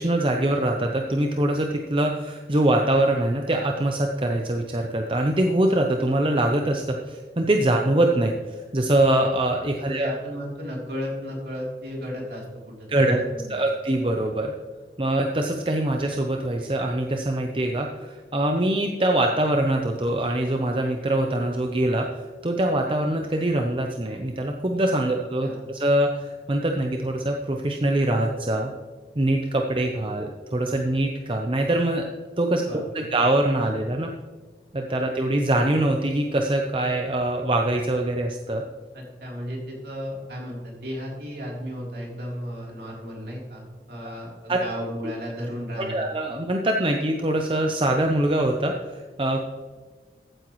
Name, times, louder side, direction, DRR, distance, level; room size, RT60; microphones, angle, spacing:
voice 1, 0.0-10.1 12.9-13.2 13.5-14.5 15.0-28.7 29.2-32.0 32.4-34.1 34.7-38.6 44.5-44.6 45.8-49.4, right 1 dB, 30° right, 2 dB, 0.7 m, -23 dB
voice 2, 9.8-13.5 25.0-25.1 25.4-25.7 32.7-33.1 38.9-46.1, equal, 60° right, -2 dB, 3.4 m, -34 dB
14.5 x 8.9 x 3.1 m, 1.4 s
head